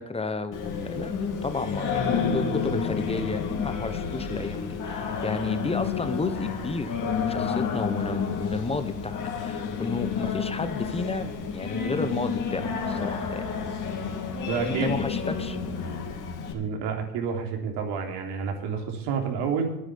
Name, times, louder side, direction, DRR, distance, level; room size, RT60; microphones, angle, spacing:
voice 1, 0.0-13.5 14.6-15.6, left 3 dB, 10° left, 11 dB, 1.2 m, -32 dB
Singing, 0.5-16.5, left 6 dB, 40° left, 3.1 m, -30 dB
voice 2, 14.5-14.9 16.5-19.7, right 6 dB, 55° right, 3 dB, 3.6 m, -29 dB
10.0 x 9.8 x 8.7 m, 0.88 s
hypercardioid pair, 95°, 48 cm